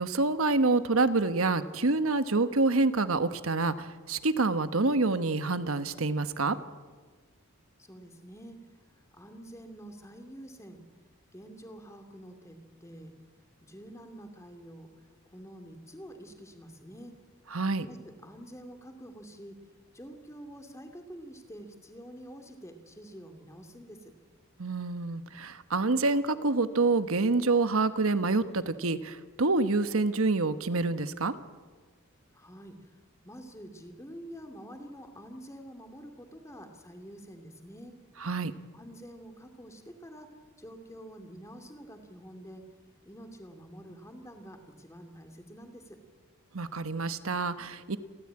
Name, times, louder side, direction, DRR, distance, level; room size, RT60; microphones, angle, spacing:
voice 1, 0.0-6.6 17.5-17.8 24.6-31.3 38.2-38.5 46.5-48.0, right 3 dB, 75° right, 11 dB, 1.2 m, -27 dB
voice 2, 7.8-8.6 8.9-10.8 11.3-13.1 13.6-14.9 15.3-17.1 17.8-19.6 19.9-24.1 32.3-33.0 33.2-37.9 38.7-42.6 43.1-46.0, equal, 15° left, 5 dB, 2.4 m, -47 dB
29.0 x 13.5 x 8.8 m, 1.5 s
head